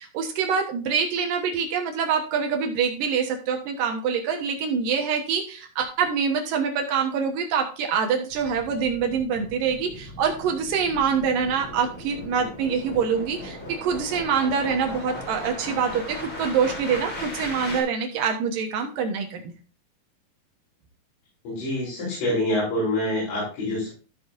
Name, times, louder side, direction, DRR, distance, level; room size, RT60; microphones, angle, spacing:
voice 1, 0.0-19.5, right 6 dB, 65° right, 3 dB, 2.4 m, -25 dB
sound 1, 8.3-17.8, left 1 dB, 30° left, 4.0 m, -38 dB
voice 2, 21.4-23.9, left 1 dB, 85° left, -8 dB, 6.4 m, -26 dB
14.0 x 6.7 x 2.6 m, 0.36 s
omnidirectional pair, 5.0 m